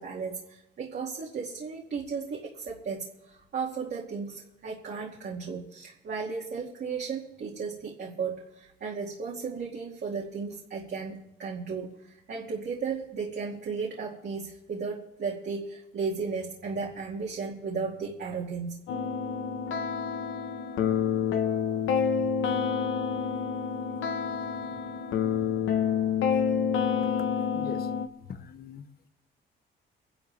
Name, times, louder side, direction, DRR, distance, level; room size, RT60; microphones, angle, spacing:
voice 1, 0.0-18.8, right 5 dB, 55° right, 2.4 m, -35 dB
sound 1, 18.9-28.1, left 7 dB, 85° left, 1.2 m, -28 dB
voice 2, 27.5-27.9 28.3-28.9, left 7 dB, 50° left, 1.0 m, -41 dB
24.0 x 11.5 x 3.4 m
cardioid pair, 90°, 20 cm